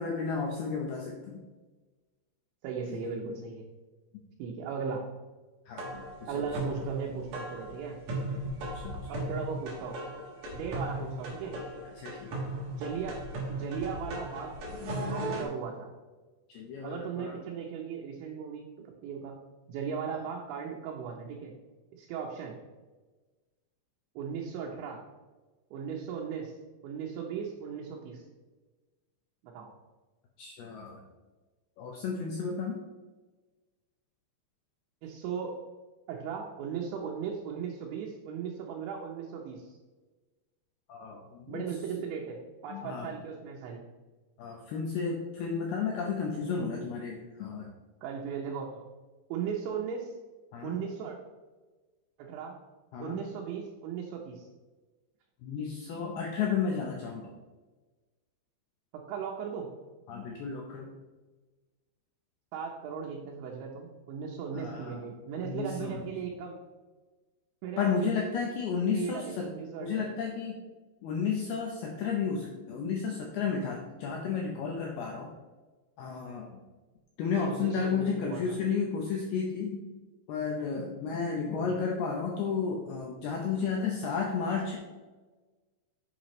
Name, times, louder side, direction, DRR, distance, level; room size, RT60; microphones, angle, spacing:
voice 1, 0.0-1.4 2.9-3.0 5.7-6.4 8.7-9.0 12.0-12.5 16.5-17.4 30.4-31.0 31.8-32.8 40.9-41.7 42.0-42.1 42.7-43.1 44.4-47.7 50.5-50.8 52.9-53.3 55.4-57.4 60.1-60.9 64.5-65.0 65.4-66.2 67.8-69.5 69.8-70.6 71.0-75.3 76.0-76.6 77.2-80.0 80.3-84.8, left 5 dB, 75° left, 0 dB, 2.4 m, -33 dB
voice 2, 2.6-3.6 4.4-5.1 6.3-8.0 9.1-10.0 10.5-11.6 12.7-13.2 13.5-14.6 15.1-15.9 16.8-18.7 19.0-19.3 19.7-21.5 21.9-22.6 24.2-25.1 25.7-26.5 26.8-28.2 29.4-29.7 35.0-35.6 36.1-39.8 41.5-43.8 48.0-48.9 49.3-50.1 50.6-51.2 52.2-52.6 53.0-54.5 58.9-59.7 62.5-66.6 67.6-68.1 68.9-70.0 77.3-78.6 81.5-81.7, right 6 dB, 80° right, -1 dB, 3.2 m, -37 dB
sound 1, 5.8-15.4, right 1 dB, 55° right, 2.0 m, -37 dB
8.9 x 7.6 x 3.2 m, 1.3 s
omnidirectional pair, 5.4 m